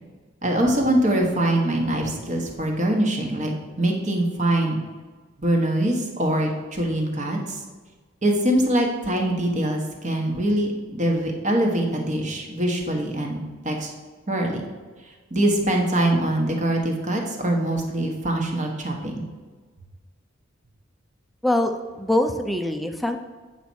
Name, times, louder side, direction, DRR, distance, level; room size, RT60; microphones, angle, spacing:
voice 1, 0.4-4.8 5.4-7.6 8.2-13.4 13.6-13.9 14.3-14.6 15.3-19.2, right 1 dB, 35° right, 1 dB, 1.3 m, -23 dB
voice 2, 21.4-23.2, left 1 dB, ahead, 6 dB, 0.5 m, -23 dB
8.7 x 4.2 x 6.2 m, 1.4 s
head